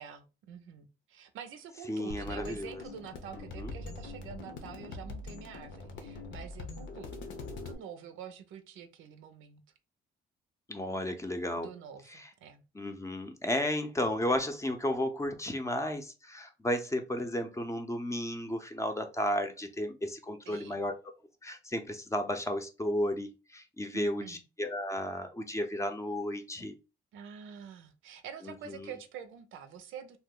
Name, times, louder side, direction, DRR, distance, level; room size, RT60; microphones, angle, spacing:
voice 1, 0.0-7.3 7.6-9.6 11.6-12.6 20.5-20.9 23.9-24.4 27.1-30.2, right 7 dB, 85° right, 9 dB, 0.5 m, -47 dB
voice 2, 1.9-2.8 3.6-3.7 10.7-11.7 12.1-12.3 12.7-20.9 21.4-26.8 28.4-28.9, left 1 dB, 15° left, 6 dB, 0.6 m, -33 dB
sound 1, 2.1-7.7, left 3 dB, 70° left, 0.7 m, -43 dB
2.8 x 2.1 x 3.6 m, 0.30 s
cardioid pair, 90°, 20 cm